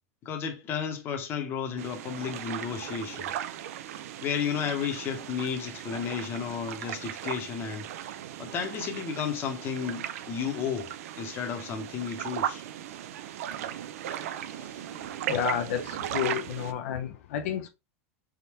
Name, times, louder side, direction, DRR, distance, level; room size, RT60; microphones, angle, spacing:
voice 1, 0.2-3.4 4.2-7.9 8.4-10.9 11.2-12.6 14.6-14.8, left 7 dB, 30° left, 0.9 m, -33 dB
sound 1, 1.8-16.7, right 11 dB, 75° right, 0.5 m, -37 dB
voice 2, 15.3-17.7, left 9 dB, 70° left, 0.6 m, -31 dB
4.1 x 3.6 x 2.9 m
supercardioid pair, 155°, 8 cm